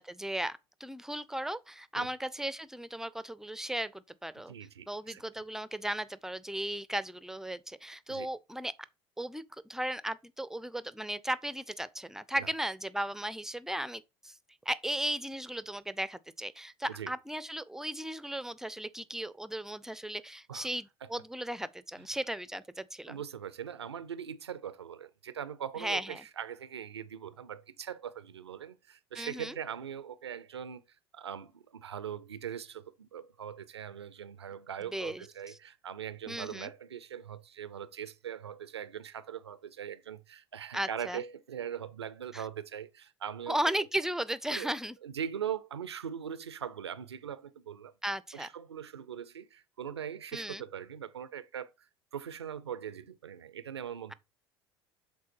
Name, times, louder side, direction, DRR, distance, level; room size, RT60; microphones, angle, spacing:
voice 1, 0.0-4.5 4.9-8.7 9.2-14.4 14.7-23.2 25.8-26.2 29.2-29.6 34.9-35.6 36.3-36.7 40.7-41.2 42.3-42.4 43.5-45.0 48.0-48.5 50.3-50.6, right 1 dB, 5° right, 0.5 m, -36 dB
voice 2, 4.5-5.2 8.1-8.3 12.4-12.5 17.0-17.1 20.5-20.7 21.0-21.1 23.1-30.8 31.1-43.6 44.5-44.7 45.0-47.9 48.3-51.7 52.1-54.1, right 8 dB, 90° right, 0.5 m, -41 dB
7.4 x 3.8 x 4.4 m
hypercardioid pair, 70°, 13 cm